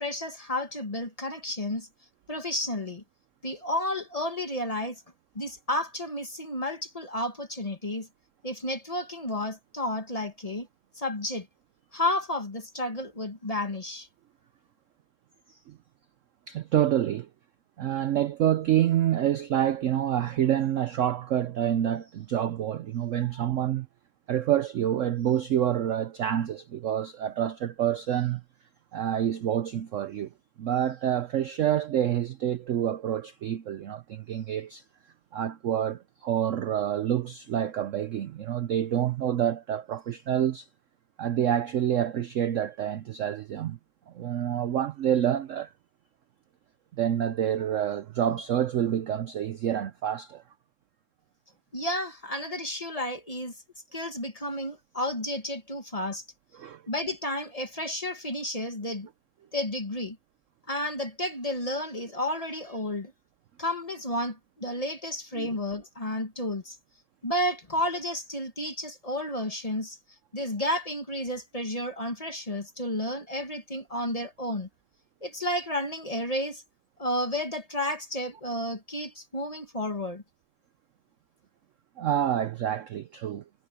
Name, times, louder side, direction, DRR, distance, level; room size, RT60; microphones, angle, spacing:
voice 1, 0.0-1.9 2.3-3.0 3.4-5.0 5.3-8.1 8.4-10.7 11.0-11.5 11.9-14.1 51.7-53.5 53.9-56.2 56.9-59.1 59.5-60.2 60.7-63.1 63.6-66.8 67.2-70.0 70.3-74.7 75.2-76.6 77.0-80.2, left 1 dB, 20° left, 1.5 m, -31 dB
voice 2, 16.5-17.3 17.8-23.9 24.3-28.4 28.9-30.3 30.6-34.8 35.3-40.7 41.2-43.8 44.1-45.7 47.0-50.4 56.5-56.8 65.4-65.6 82.0-83.4, right 10 dB, 65° right, 0.8 m, -27 dB
omnidirectional pair, 1.8 m